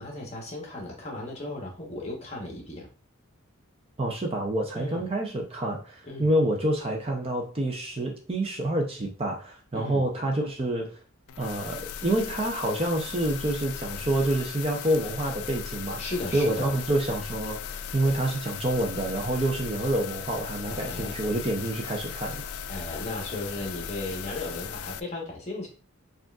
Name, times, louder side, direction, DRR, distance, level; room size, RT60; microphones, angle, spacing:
voice 1, 0.0-2.9 4.7-5.1 6.0-6.3 9.7-10.0 16.0-16.8 20.7-21.2 22.7-25.7, left 2 dB, 30° left, -1 dB, 1.1 m, -35 dB
voice 2, 4.0-11.0 11.4-16.0 16.3-22.4, right 1 dB, 25° right, 2 dB, 0.5 m, -28 dB
sound 1, 11.3-25.0, left 8 dB, 85° left, 0.4 m, -38 dB
6.1 x 2.5 x 2.3 m, 0.35 s
head